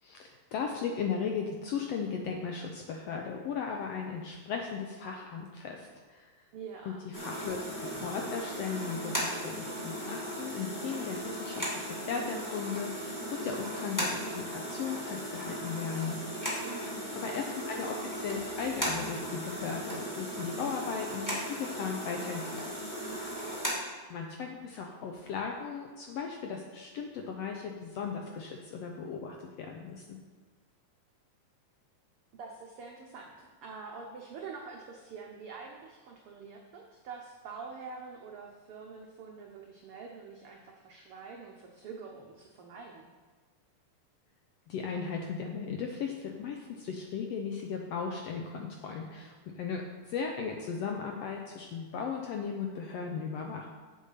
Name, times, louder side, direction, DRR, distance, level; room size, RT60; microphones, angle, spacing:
voice 1, 0.0-6.3 6.9-16.2 17.2-22.7 24.1-30.2 44.7-53.7, left 6 dB, 75° left, 2 dB, 1.5 m, -37 dB
voice 2, 6.5-7.0 16.6-17.1 23.5-23.8 32.4-43.1, right 5 dB, 85° right, 0 dB, 1.2 m, -46 dB
sound 1, 7.1-23.7, equal, 10° left, 1.2 m, -37 dB
7.5 x 7.4 x 5.6 m, 1.4 s
omnidirectional pair, 3.6 m